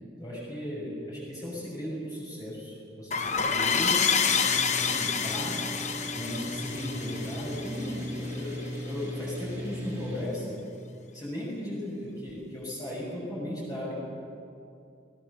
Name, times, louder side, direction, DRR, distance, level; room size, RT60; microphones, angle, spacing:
voice 1, 0.2-4.2 4.6-5.7 6.1-10.6 11.1-13.9, left 1 dB, 20° left, -5 dB, 6.6 m, -36 dB
sound 1, 3.1-8.4, left 6 dB, 35° left, 0.9 m, -28 dB
sound 2, 4.2-10.2, equal, 10° right, 3.9 m, -38 dB
29.5 x 19.0 x 6.8 m, 2.5 s
head